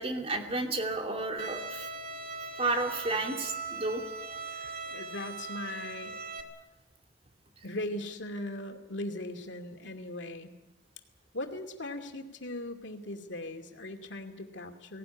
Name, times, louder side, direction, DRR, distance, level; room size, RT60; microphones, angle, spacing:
voice 1, 0.0-1.9 2.6-4.0, right 2 dB, 35° right, 4 dB, 2.6 m, -32 dB
Bowed string instrument, 1.4-6.4, right 4 dB, 55° right, 2.3 m, -40 dB
voice 2, 4.5-6.2 7.6-10.5 11.3-15.0, left 1 dB, 70° left, 5 dB, 2.5 m, -39 dB
18.5 x 18.5 x 10.0 m, 1.0 s
head